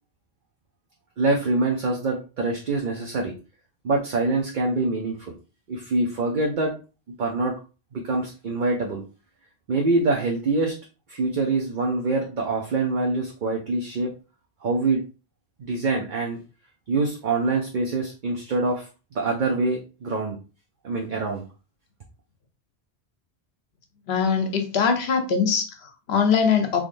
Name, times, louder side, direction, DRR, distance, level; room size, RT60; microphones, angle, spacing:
voice 1, 1.2-3.3 3.8-5.3 5.7-6.7 7.2-7.6 7.9-9.0 9.7-10.7 11.1-14.1 14.6-15.0 15.6-16.4 16.9-18.9 19.1-20.4 20.8-21.4, right 3 dB, 55° right, 0 dB, 0.7 m, -25 dB
voice 2, 24.1-26.8, left 6 dB, 70° left, 5 dB, 1.0 m, -22 dB
3.7 x 3.1 x 2.5 m, 0.33 s
omnidirectional pair, 1.1 m